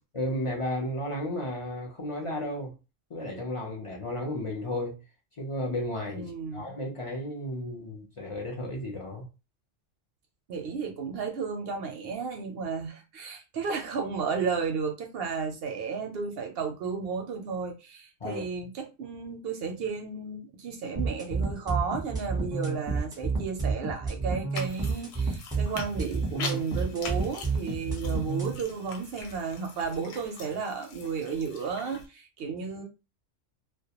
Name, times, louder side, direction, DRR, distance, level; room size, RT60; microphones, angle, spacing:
voice 1, 0.1-2.7 3.1-5.0 5.4-9.2 18.2-18.4, left 1 dB, 50° left, 0.4 m, -33 dB
voice 2, 6.1-6.7 10.5-32.8, right 5 dB, 65° right, 0.7 m, -33 dB
sound 1, 21.0-28.5, right 4 dB, 5° right, 0.6 m, -29 dB
sound 2, 24.6-32.1, left 4 dB, 65° left, 0.8 m, -43 dB
2.2 x 2.1 x 2.8 m
omnidirectional pair, 1.3 m